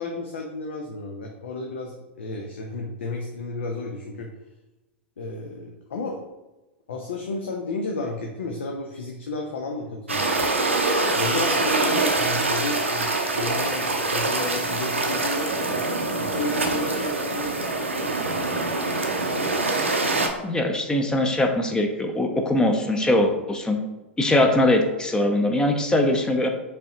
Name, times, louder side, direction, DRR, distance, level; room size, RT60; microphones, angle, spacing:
voice 1, 0.0-4.3 5.2-6.2 6.9-10.5 11.1-13.1 13.3-15.8 16.2-18.6, left 2 dB, 70° left, 1 dB, 0.6 m, -32 dB
sound 1, 10.1-20.3, right 2 dB, 85° right, 0.6 m, -24 dB
voice 2, 20.4-23.8 24.2-26.5, left 1 dB, 10° left, 4 dB, 0.6 m, -21 dB
5.3 x 3.5 x 2.9 m, 1.1 s
figure-of-eight pair, 95°, 7 cm